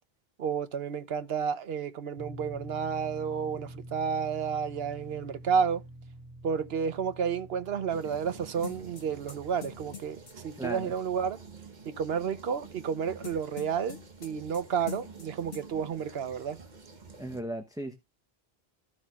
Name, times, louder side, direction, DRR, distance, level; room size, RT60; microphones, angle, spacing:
voice 1, 0.4-5.8 6.4-11.4 11.8-16.6, right 7 dB, 70° right, 1.0 m, -31 dB
sound 1, 2.2-12.2, right 1 dB, 25° right, 2.2 m, -48 dB
sound 2, 7.9-17.4, right 4 dB, 45° right, 1.3 m, -49 dB
sound 3, 8.6-10.3 13.2-14.6 14.9-15.3 15.5-15.6, left 8 dB, 70° left, 1.6 m, -43 dB
voice 2, 10.6-10.9 17.2-17.9, right 1 dB, 5° right, 0.7 m, -36 dB
14.0 x 6.2 x 2.3 m
omnidirectional pair, 1.1 m